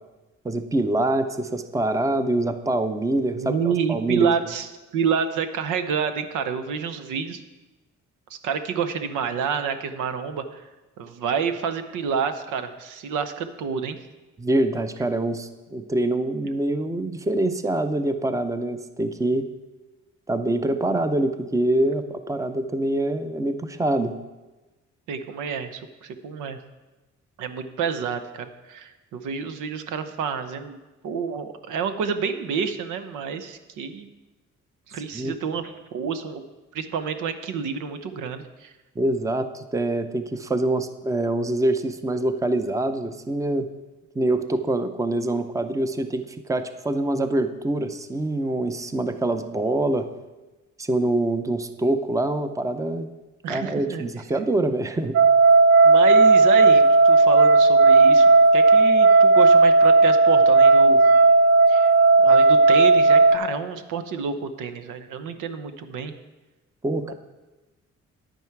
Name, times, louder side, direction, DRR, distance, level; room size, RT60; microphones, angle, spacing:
voice 1, 0.4-4.3 14.4-19.5 20.3-24.1 35.1-35.6 39.0-43.7 44.1-50.1 50.8-53.1 53.5-55.2 66.8-67.1, right 1 dB, 10° right, 9 dB, 0.6 m, -25 dB
voice 2, 3.4-4.7 4.9-7.4 8.3-10.6 11.0-14.0 25.1-26.6 27.4-30.8 31.0-34.1 34.9-36.4 36.7-38.7 53.4-54.1 55.8-61.0 61.7-61.9 62.2-66.1 67.0-67.1, right 6 dB, 85° right, 9 dB, 0.8 m, -28 dB
sound 1, 55.1-63.4, right 3 dB, 60° right, 0.6 m, -14 dB
10.0 x 9.1 x 4.6 m, 1.1 s
cardioid pair, 90°, 30 cm